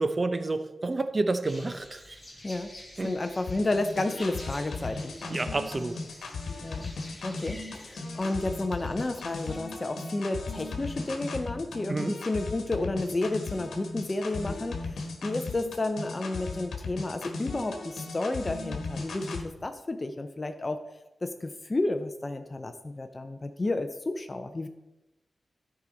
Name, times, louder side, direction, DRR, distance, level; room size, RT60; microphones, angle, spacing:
voice 1, 0.0-2.2 3.0-3.1 5.3-6.0 11.9-12.2, right 2 dB, 35° right, 10 dB, 0.6 m, -29 dB
sound 1, 1.4-9.6, left 1 dB, 15° left, 2.1 m, -49 dB
voice 2, 3.0-5.3 6.6-6.9 7.2-20.8 21.2-24.7, left 2 dB, 30° left, 7 dB, 0.6 m, -31 dB
sound 2, 3.5-19.4, left 3 dB, 90° left, 1.2 m, -37 dB
12.5 x 5.0 x 4.0 m, 0.98 s
wide cardioid pair, 90°, 0 cm